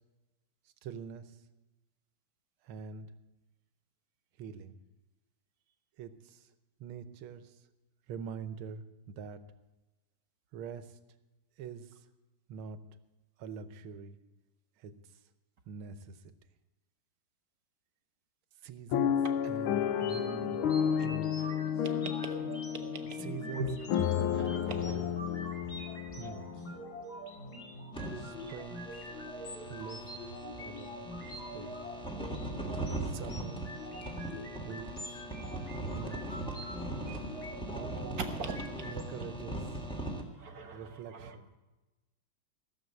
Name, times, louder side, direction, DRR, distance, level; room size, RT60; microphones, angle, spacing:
voice 1, 0.8-1.3 2.6-3.1 4.4-4.8 6.0-6.5 6.8-7.6 8.1-9.4 10.5-11.0 11.6-12.0 12.5-12.8 13.4-14.2 14.8-14.9 15.7-16.2 18.6-19.2 19.4-20.7 21.0-21.5 23.2-23.7 24.0-24.3 24.6-25.2 26.2-26.7 28.2-28.9 29.7-30.0 30.6-31.0 31.5-31.8 33.0-33.7 34.6-35.2 35.9-36.4 37.7-38.3 38.8-39.8 40.7-41.5, right 7 dB, 80° right, 12 dB, 1.7 m, -44 dB
sound 1, 18.9-27.0 27.6-27.7 28.0-28.2, left 9 dB, 75° left, 1.5 m, -32 dB
sound 2, 19.8-39.0, right 1 dB, 30° left, 2.2 m, -45 dB
voice 2, 24.3-24.9 38.4-38.9 40.3-41.6, right 3 dB, 50° right, 7 dB, 1.4 m, -41 dB
sound 3, 27.9-40.2, right 1 dB, 5° left, 1.3 m, -40 dB
15.5 x 6.9 x 7.9 m, 1.1 s
omnidirectional pair, 2.3 m